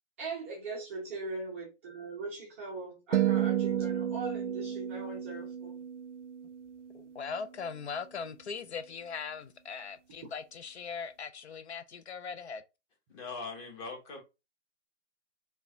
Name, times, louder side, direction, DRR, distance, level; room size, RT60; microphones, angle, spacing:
voice 1, 0.2-5.8, right 3 dB, 10° right, 0.4 m, -40 dB
sound 1, 3.1-7.4, right 10 dB, 80° right, 0.6 m, -32 dB
voice 2, 6.9-12.6, left 5 dB, 65° left, 0.5 m, -40 dB
voice 3, 13.1-14.2, left 4 dB, 15° left, 0.8 m, -41 dB
4.7 x 2.2 x 2.6 m
figure-of-eight pair, 130°, 36 cm